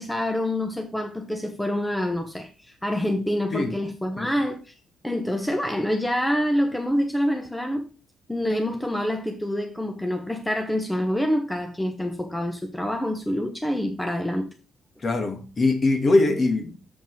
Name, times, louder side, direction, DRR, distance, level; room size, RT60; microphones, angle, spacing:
voice 1, 0.0-4.7 5.0-7.9 8.3-14.5, equal, 5° left, 1.1 m, -26 dB
voice 2, 15.0-16.8, left 2 dB, 40° left, 2.1 m, -22 dB
7.5 x 5.4 x 4.8 m
cardioid pair, 90°, 0 cm